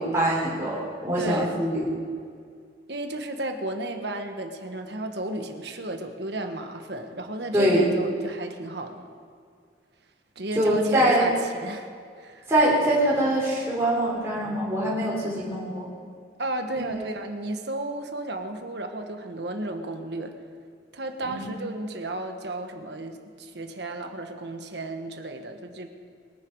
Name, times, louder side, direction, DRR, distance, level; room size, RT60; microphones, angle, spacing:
voice 1, 0.0-1.9 7.5-7.8 10.6-11.3 12.5-15.9 16.9-17.0 21.3-21.5, right 1 dB, 15° right, -6 dB, 3.6 m, -23 dB
voice 2, 1.2-1.6 2.9-9.1 10.3-11.9 12.2-12.5 16.4-20.3 20.9-25.9, right 1 dB, 65° right, 5 dB, 1.4 m, -33 dB
23.0 x 10.5 x 4.7 m, 2.2 s
head